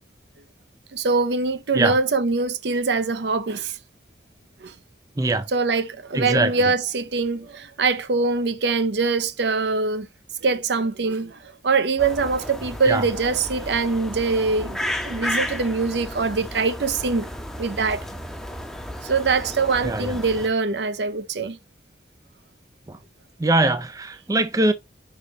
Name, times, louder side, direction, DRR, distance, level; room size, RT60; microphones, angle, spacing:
voice 1, 0.9-3.8 4.6-4.7 5.5-10.1 10.4-17.3 17.6-18.0 19.0-21.6, right 4 dB, 70° right, 0.6 m, -23 dB
voice 2, 5.2-5.5 6.1-6.5 12.9-13.0 17.8-17.9 19.8-20.2 22.9-23.0 23.4-24.7, right 2 dB, 20° right, 0.4 m, -22 dB
sound 1, 12.0-20.5, left 1 dB, 5° left, 0.7 m, -33 dB
5.3 x 5.0 x 3.9 m
head